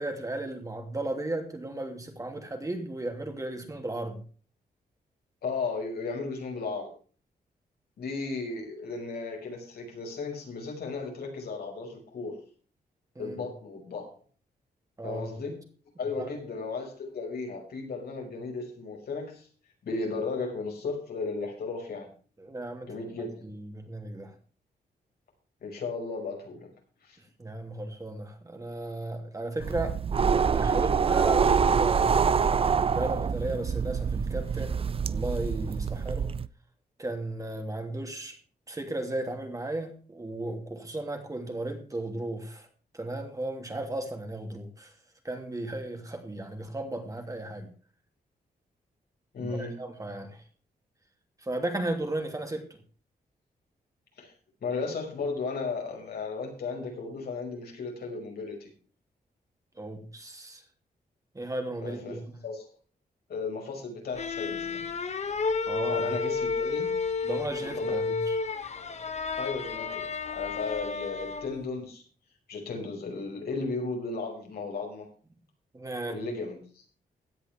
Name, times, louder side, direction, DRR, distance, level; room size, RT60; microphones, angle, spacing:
voice 1, 0.0-4.2 13.1-13.4 15.0-15.3 16.2-16.3 22.4-23.0 23.4-24.4 27.4-32.4 32.9-36.3 37.0-38.4 38.7-42.7 42.9-44.9 45.2-47.7 49.4-50.4 51.4-52.7 59.8-60.6 61.3-62.2 65.6-66.1 67.2-68.4 75.7-76.2, right 2 dB, 20° right, 4 dB, 2.8 m, -35 dB
voice 2, 5.4-6.9 8.0-12.4 13.2-14.1 15.0-15.6 16.0-19.5 19.8-22.1 22.9-23.4 25.6-26.7 27.0-27.2 49.3-49.7 54.2-54.3 54.6-58.7 61.8-62.7 63.3-64.8 65.9-66.9 67.6-68.0 69.4-72.0 72.5-75.1 76.1-76.8, left 4 dB, 75° left, 1 dB, 5.5 m, -35 dB
sound 1, 29.6-36.5, right 6 dB, 35° right, 0.5 m, -25 dB
sound 2, 64.1-71.6, left 4 dB, 45° left, 1.3 m, -31 dB
16.5 x 9.9 x 3.5 m, 0.40 s
wide cardioid pair, 115°, 16 cm